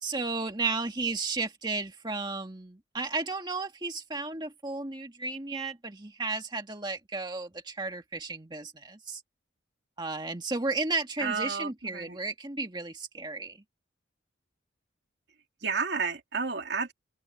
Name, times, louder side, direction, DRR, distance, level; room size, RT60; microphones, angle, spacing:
voice 1, 0.0-9.2 10.0-13.6, right 3 dB, 25° right, 1.8 m, -33 dB
voice 2, 11.2-12.2 15.6-16.9, right 5 dB, 65° right, 2.5 m, -31 dB
open air
head